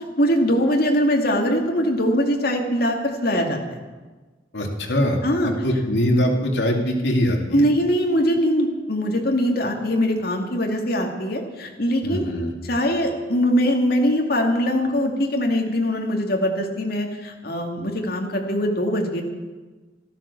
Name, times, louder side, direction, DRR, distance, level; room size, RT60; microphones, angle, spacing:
voice 1, 0.0-3.6 5.2-5.5 7.5-12.3 12.7-19.2, equal, 60° left, 2 dB, 2.4 m, -22 dB
voice 2, 4.5-5.2 5.4-7.6 12.0-12.5, equal, 80° left, 1 dB, 2.5 m, -22 dB
13.0 x 13.0 x 7.0 m, 1.3 s
head